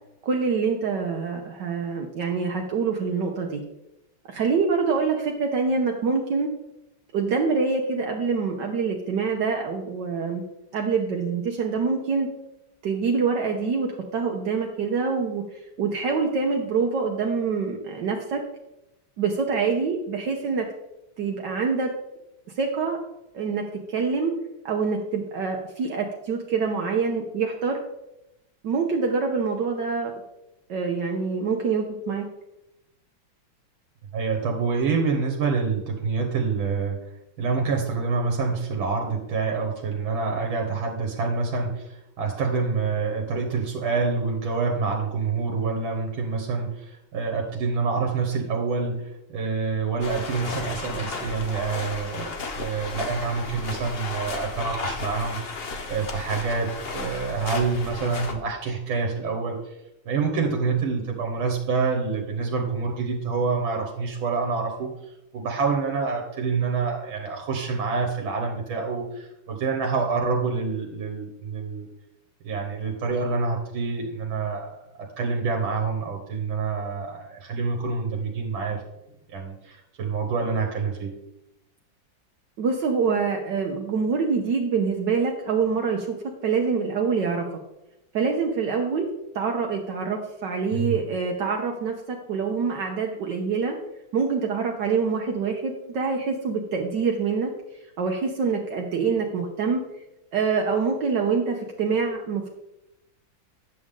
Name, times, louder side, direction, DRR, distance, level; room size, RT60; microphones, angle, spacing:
voice 1, 0.2-3.6 4.3-6.5 7.1-10.4 10.7-12.3 12.8-15.4 15.8-18.4 19.2-20.7 21.2-21.9 22.6-23.0 23.3-24.3 24.6-27.8 28.6-30.1 30.7-32.2 82.6-86.2 86.4-87.5 88.1-89.1 89.3-93.8 94.1-97.5 98.0-99.8 100.3-102.5, right 5 dB, 65° right, 1 dB, 1.4 m, -25 dB
voice 2, 34.1-37.0 37.4-55.4 55.9-59.8 60.1-64.9 65.3-71.9 72.4-78.8 79.3-81.1 90.7-91.0, right 4 dB, 85° right, 1 dB, 2.0 m, -27 dB
sound 1, 50.0-58.3, left 3 dB, 45° left, 0.8 m, -34 dB
9.6 x 6.6 x 3.7 m, 0.89 s
omnidirectional pair, 2.1 m